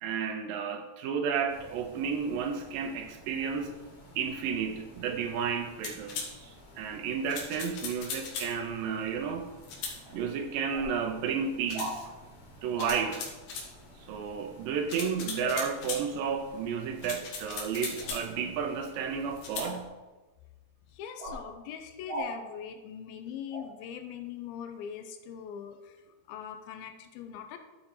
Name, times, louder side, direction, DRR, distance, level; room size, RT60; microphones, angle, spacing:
voice 1, 0.0-3.8 4.2-9.5 10.1-12.1 12.6-13.3 14.1-19.9, right 6 dB, 80° right, 6 dB, 2.2 m, -32 dB
sound 1, 1.5-19.8, left 1 dB, 40° left, 2.1 m, -53 dB
sound 2, 5.8-6.3 7.3-8.5 9.6-10.0 11.7-11.9 12.8-13.7 14.9-16.0 17.0-18.3 19.4-19.7, left 5 dB, 65° left, 2.3 m, -38 dB
sound 3, 10.0-10.1 10.7-10.9 11.7-12.0 12.7-12.9 15.4-15.6 18.0-18.2 19.6-19.8 21.2-21.4 22.1-22.3 23.5-23.6, right 1 dB, 50° right, 1.2 m, -37 dB
voice 2, 20.9-26.0 26.3-27.6, left 8 dB, 90° left, 7 dB, 2.5 m, -42 dB
11.0 x 4.3 x 4.3 m, 1.2 s
omnidirectional pair, 4.3 m